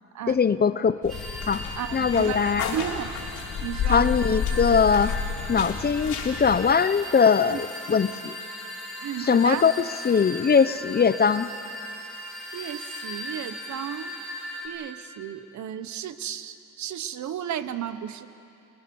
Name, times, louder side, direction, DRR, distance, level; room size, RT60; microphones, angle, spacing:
voice 1, 0.3-1.2 1.5-1.6 1.9-2.7 3.9-5.2 5.5-8.4 9.2-11.5, left 6 dB, 30° left, 14 dB, 0.7 m, -21 dB
sound 1, 1.0-6.6, left 6 dB, 80° left, 3.6 m, -31 dB
sound 2, 1.1-14.7, left 1 dB, ahead, 6.3 m, -38 dB
voice 2, 1.7-2.4 2.7-3.3 3.6-4.1 7.5-7.6 9.0-9.6 12.5-14.1 14.6-18.3, right 9 dB, 70° right, 12 dB, 1.2 m, -33 dB
29.5 x 21.0 x 7.1 m, 2.6 s
cardioid pair, 90°, 30 cm